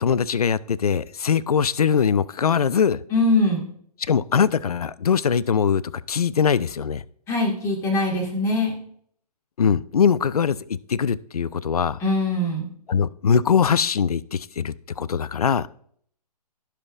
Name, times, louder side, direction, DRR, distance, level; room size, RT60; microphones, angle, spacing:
voice 1, 0.0-3.0 4.0-5.8 6.1-7.0 9.6-12.0 12.9-15.7, left 7 dB, 65° left, 20 dB, 0.4 m, -22 dB
voice 2, 3.1-3.7 7.3-8.8 12.0-12.7, left 2 dB, 15° left, 1 dB, 1.5 m, -22 dB
16.5 x 5.7 x 2.4 m, 0.63 s
figure-of-eight pair, 130°, 21 cm